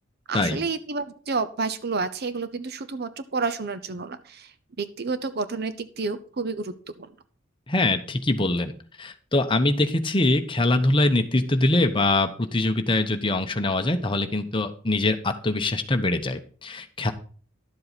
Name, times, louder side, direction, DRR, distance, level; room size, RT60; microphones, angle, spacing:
voice 1, 0.3-4.5 4.8-7.1, right 4 dB, 55° right, 13 dB, 0.7 m, -30 dB
voice 2, 7.7-8.7 9.0-17.1, left 2 dB, 25° left, 6 dB, 1.0 m, -23 dB
11.5 x 7.6 x 4.1 m, 0.42 s
head